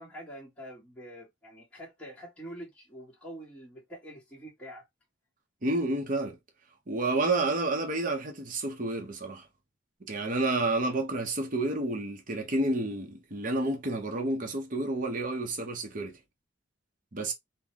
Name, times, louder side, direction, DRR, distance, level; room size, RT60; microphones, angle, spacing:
voice 1, 0.0-4.9, equal, 5° left, 1.3 m, -45 dB
voice 2, 5.6-6.4 6.9-9.5 10.1-16.2 17.1-17.3, right 2 dB, 45° right, 0.8 m, -30 dB
3.9 x 2.2 x 3.0 m
head